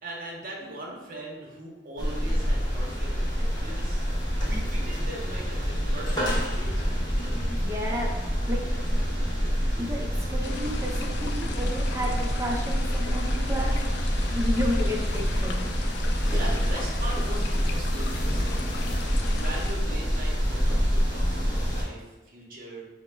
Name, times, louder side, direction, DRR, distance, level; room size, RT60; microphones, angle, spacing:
voice 1, 0.0-4.0 4.4-7.0 16.3-18.7 19.3-22.9, right 1 dB, 50° right, -3 dB, 0.8 m, -40 dB
sound 1, 2.0-21.8, equal, 25° left, 0.7 m, -27 dB
voice 2, 7.5-8.1 8.5-8.6 9.8-13.7 14.3-15.7, equal, 15° right, -3 dB, 0.6 m, -32 dB
sound 2, 10.4-19.7, left 4 dB, 65° left, 0.3 m, -40 dB
4.0 x 2.1 x 3.3 m, 1.1 s
head